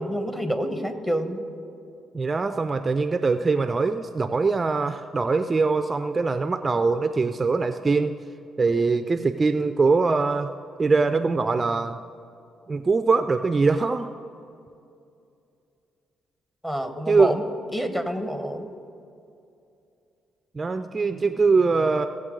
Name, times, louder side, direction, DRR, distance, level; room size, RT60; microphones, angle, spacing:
voice 1, 0.0-1.5 16.6-17.4 17.7-18.7, equal, 10° left, 8 dB, 1.0 m, -27 dB
voice 2, 2.1-8.2 8.6-10.5 10.8-12.0 12.7-14.1 17.1-17.3 20.5-22.1, right 4 dB, 30° right, 9 dB, 0.4 m, -22 dB
17.0 x 7.6 x 3.8 m, 2.6 s
cardioid pair, 90°, 0 cm